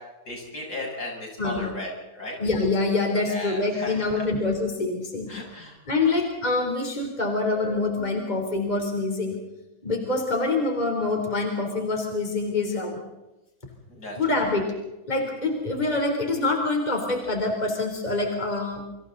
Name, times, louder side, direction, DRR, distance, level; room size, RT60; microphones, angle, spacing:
voice 1, 0.3-2.3 3.3-4.2 5.3-5.7 13.9-14.4, left 1 dB, 70° left, -1 dB, 8.3 m, -35 dB
voice 2, 1.4-1.7 2.4-5.3 5.9-9.4 9.8-13.0 14.2-14.7 15.1-18.8, left 3 dB, 25° left, 2 dB, 3.9 m, -25 dB
30.0 x 25.5 x 4.1 m, 1.0 s
omnidirectional pair, 1.8 m